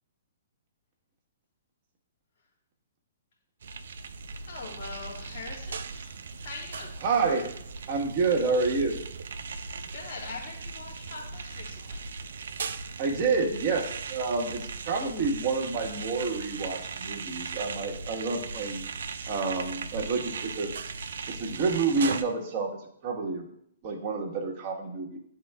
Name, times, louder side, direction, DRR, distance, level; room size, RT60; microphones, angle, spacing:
sound 1, 3.6-22.2, right 5 dB, 65° right, 0.4 m, -38 dB
voice 1, 4.4-6.9 9.5-12.1, left 4 dB, 55° left, -3 dB, 2.2 m, -43 dB
voice 2, 7.0-7.6 7.9-9.0 13.0-18.8 19.3-20.7 21.3-22.8 23.0-23.5 23.8-25.2, right 4 dB, 40° right, 0 dB, 1.4 m, -28 dB
11.0 x 3.8 x 2.3 m, 0.70 s
figure-of-eight pair, 120°, 0 cm